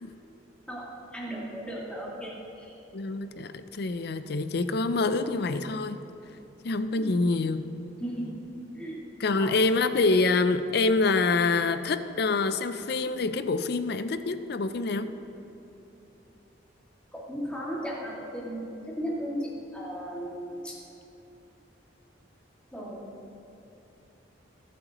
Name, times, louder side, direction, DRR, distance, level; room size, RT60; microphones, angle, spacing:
voice 1, 1.1-2.8 7.0-7.1 8.0-8.4 8.7-9.0 9.4-9.5 17.1-20.8 22.7-23.3, equal, 5° left, -6 dB, 2.3 m, -36 dB
voice 2, 2.9-6.0 6.6-7.6 9.2-15.1, left 3 dB, 60° left, 11 dB, 0.5 m, -26 dB
21.5 x 7.7 x 3.1 m, 3.0 s
head